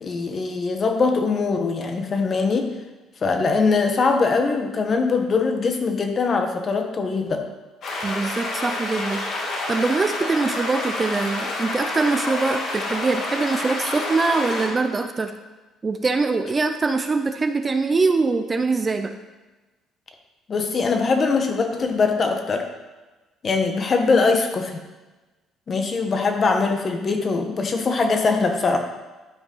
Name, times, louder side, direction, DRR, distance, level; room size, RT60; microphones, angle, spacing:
voice 1, 0.0-2.7 3.2-7.4 20.5-22.7 23.4-24.8 25.7-28.8, left 4 dB, 35° left, 5 dB, 1.2 m, -22 dB
sound 1, 7.8-14.7, left 2 dB, 55° left, 2.2 m, -28 dB
voice 2, 8.0-9.2 9.7-15.3 15.8-19.1, right 3 dB, 25° right, 7 dB, 0.5 m, -23 dB
12.0 x 5.1 x 5.5 m, 1.2 s
cardioid pair, 125°, 0 cm